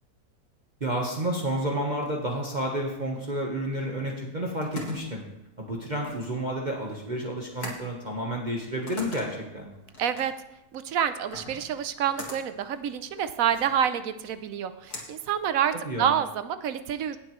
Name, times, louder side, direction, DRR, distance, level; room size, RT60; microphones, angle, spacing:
voice 1, 0.8-5.2 5.6-9.7 15.8-16.1, right 1 dB, 30° right, -2 dB, 1.3 m, -30 dB
sound 1, 4.3-16.1, left 2 dB, 80° left, 2.4 m, -43 dB
voice 2, 10.0-10.3 10.7-17.2, right 9 dB, 70° right, 11 dB, 1.0 m, -28 dB
17.5 x 7.3 x 3.1 m, 0.88 s
omnidirectional pair, 1.6 m